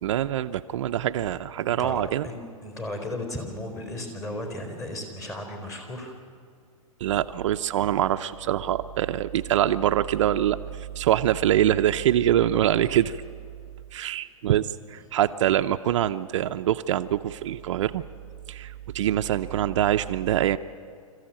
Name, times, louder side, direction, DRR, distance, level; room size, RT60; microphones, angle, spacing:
voice 1, 0.0-2.3 7.0-13.2 13.9-18.0 18.5-20.6, right 11 dB, 60° right, 8 dB, 0.7 m, -24 dB
voice 2, 1.6-6.1, left 1 dB, 15° left, 4 dB, 4.2 m, -35 dB
26.5 x 14.5 x 8.9 m, 2.2 s
hypercardioid pair, 135°, 18 cm